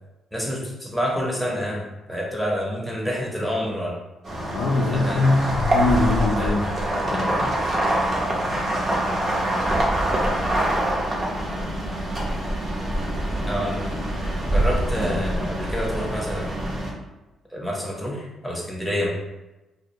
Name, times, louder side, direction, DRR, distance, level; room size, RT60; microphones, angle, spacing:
voice 1, 0.3-3.9 4.9-5.3 6.4-6.6 13.5-14.0 14.4-16.8 17.5-19.1, equal, ahead, -3 dB, 0.7 m, -28 dB
sound 1, 4.2-16.9, right 1 dB, 35° right, 0.6 m, -25 dB
voice 2, 4.5-6.6 6.9-7.7, left 3 dB, 75° left, -3 dB, 0.4 m, -23 dB
2.3 x 2.0 x 2.8 m, 1.0 s
cardioid pair, 90°, 0 cm